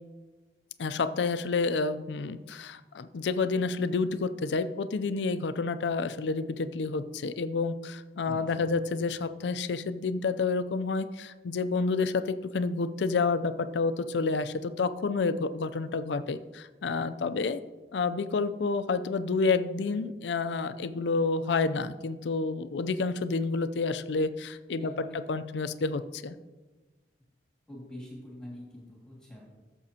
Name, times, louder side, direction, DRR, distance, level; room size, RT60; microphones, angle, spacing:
voice 1, 0.8-17.6 17.9-26.4, left 4 dB, 75° left, 11 dB, 0.5 m, -29 dB
voice 2, 8.3-8.8 24.7-25.2 27.7-29.4, equal, 5° left, -4 dB, 2.0 m, -45 dB
14.5 x 7.0 x 2.8 m, 1.2 s
head